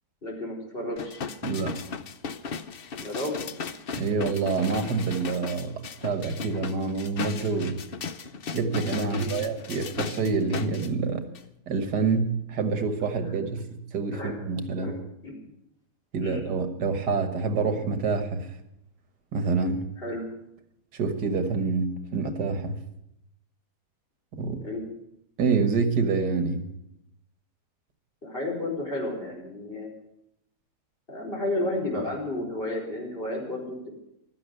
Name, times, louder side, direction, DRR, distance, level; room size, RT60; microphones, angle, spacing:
voice 1, 0.2-1.2 2.9-3.4 9.0-9.4 14.1-14.3 14.8-14.9 15.2-15.4 16.2-16.4 20.0-20.2 24.6-24.8 28.2-29.9 31.1-33.9, left 1 dB, 35° left, -2 dB, 4.6 m, -32 dB
sound 1, 1.0-10.9 11.3-11.4, left 5 dB, 50° left, 0.7 m, -36 dB
voice 2, 1.4-1.8 4.0-7.8 8.5-11.3 11.7-15.0 16.1-18.5 19.3-19.9 20.9-22.8 24.3-24.6 25.4-26.7, right 4 dB, 85° right, 7 dB, 2.0 m, -27 dB
15.5 x 12.0 x 6.6 m, 0.82 s
omnidirectional pair, 1.7 m